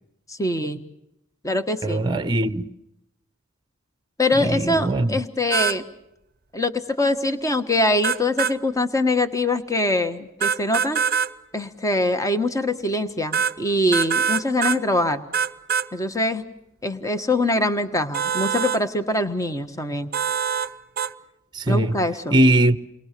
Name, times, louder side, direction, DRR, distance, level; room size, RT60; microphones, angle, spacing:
voice 1, 0.3-0.8 1.4-2.0 4.2-5.8 6.5-11.0 11.5-15.2 15.9-16.4 16.8-20.1 21.7-22.4, left 1 dB, 15° left, 1.4 m, -23 dB
voice 2, 1.8-2.7 4.3-5.2 21.5-22.0 22.3-22.8, right 1 dB, 20° right, 0.9 m, -20 dB
sound 1, 5.5-5.8 8.0-8.6 10.4-11.3 13.3-13.5 13.9-14.8 15.3-15.9 18.1-18.8 20.1-20.7 21.0-21.1, right 7 dB, 45° right, 0.9 m, -23 dB
29.5 x 22.5 x 6.9 m
head